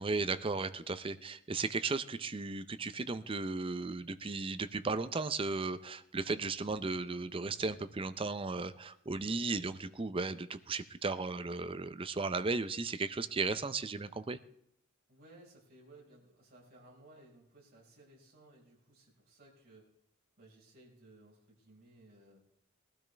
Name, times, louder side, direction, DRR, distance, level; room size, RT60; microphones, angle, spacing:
voice 1, 0.0-14.4, right 3 dB, 25° right, 12 dB, 0.5 m, -35 dB
voice 2, 15.1-19.9 20.4-22.4, right 2 dB, 45° right, -3 dB, 5.1 m, -59 dB
20.0 x 12.5 x 3.4 m, 0.74 s
head